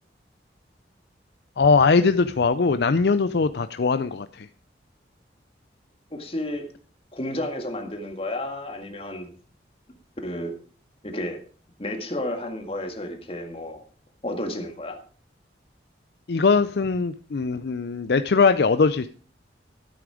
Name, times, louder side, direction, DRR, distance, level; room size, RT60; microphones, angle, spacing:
voice 1, 1.6-4.5 16.3-19.1, left 4 dB, 60° left, 11 dB, 0.5 m, -21 dB
voice 2, 6.1-6.7 7.1-9.3 10.2-10.5 11.0-11.4 11.8-13.8 14.2-15.0, left 1 dB, 30° left, 5 dB, 1.9 m, -31 dB
12.5 x 8.7 x 4.9 m, 0.42 s
head